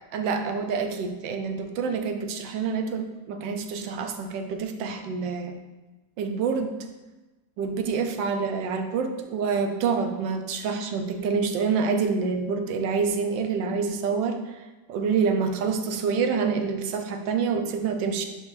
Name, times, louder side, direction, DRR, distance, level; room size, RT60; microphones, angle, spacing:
voice 1, 0.1-5.6 6.2-6.8 7.6-18.3, right 5 dB, 80° right, 6 dB, 1.3 m, -27 dB
10.5 x 3.8 x 2.6 m, 1.1 s
omnidirectional pair, 2.0 m